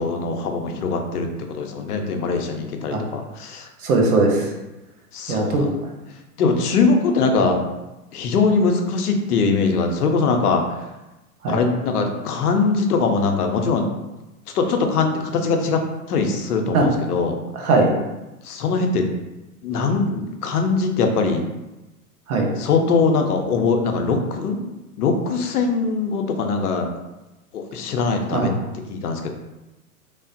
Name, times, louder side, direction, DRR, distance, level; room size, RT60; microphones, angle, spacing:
voice 1, 0.0-3.7 5.1-5.7 6.4-7.6 8.1-10.6 11.5-13.9 14.5-15.8 16.1-17.4 18.4-19.1 19.6-21.4 22.6-24.6 25.0-26.9 27.5-28.5 28.9-29.3, left 4 dB, 80° left, 4 dB, 0.6 m, -21 dB
voice 2, 3.8-4.5 5.3-5.7 11.4-11.6 16.7-16.9 17.5-17.9 22.3-22.5 28.3-28.5, right 3 dB, 75° right, 1 dB, 0.8 m, -19 dB
3.1 x 2.0 x 2.5 m, 1.0 s
hypercardioid pair, 120°, 45 cm